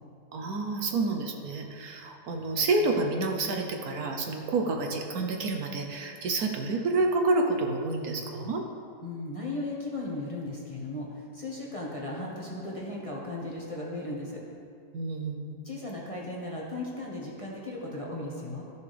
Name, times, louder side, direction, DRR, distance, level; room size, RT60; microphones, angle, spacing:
voice 1, 0.3-8.6 14.9-15.6, right 3 dB, 70° right, 3 dB, 1.2 m, -29 dB
voice 2, 9.0-14.4 15.6-18.6, left 2 dB, 20° left, -4 dB, 1.2 m, -36 dB
14.5 x 6.7 x 3.4 m, 2.4 s
omnidirectional pair, 1.7 m